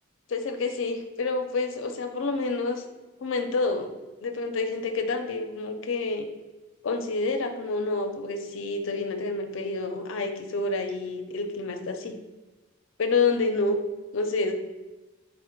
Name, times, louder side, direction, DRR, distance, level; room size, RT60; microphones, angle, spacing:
voice 1, 0.3-2.8 3.2-3.9 4.2-6.3 6.8-12.1 13.0-13.8 14.1-14.5, left 3 dB, 70° left, 6 dB, 0.5 m, -28 dB
4.2 x 2.1 x 4.4 m, 1.2 s
head